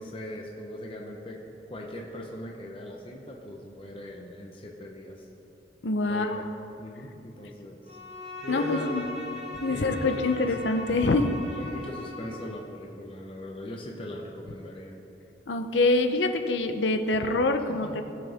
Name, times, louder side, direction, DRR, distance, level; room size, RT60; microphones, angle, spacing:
voice 1, 0.0-1.4 1.7-5.3 6.0-6.4 6.8-8.0 8.4-9.0 9.7-10.5 11.5-15.0 17.6-18.0, left 1 dB, 30° left, -1 dB, 0.9 m, -39 dB
voice 2, 5.8-6.4 8.5-9.1 9.6-11.3 15.5-18.0, left 2 dB, 80° left, 7 dB, 0.7 m, -25 dB
Bowed string instrument, 7.9-12.7, left 1 dB, 40° right, 2.0 m, -39 dB
19.0 x 6.4 x 3.5 m, 2.9 s
head